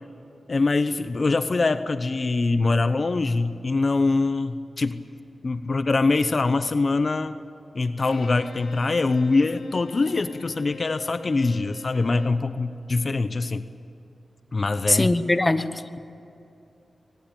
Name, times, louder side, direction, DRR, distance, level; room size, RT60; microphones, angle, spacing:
voice 1, 0.5-5.0 5.4-7.4 7.7-13.7 14.5-15.1, left 3 dB, 50° left, 12 dB, 0.8 m, -23 dB
Bowed string instrument, 8.0-12.5, left 4 dB, 80° left, 1.8 m, -43 dB
voice 2, 14.9-15.8, left 2 dB, 25° left, 12 dB, 1.0 m, -21 dB
23.5 x 19.0 x 9.0 m, 2.7 s
cardioid pair, 65°, 0 cm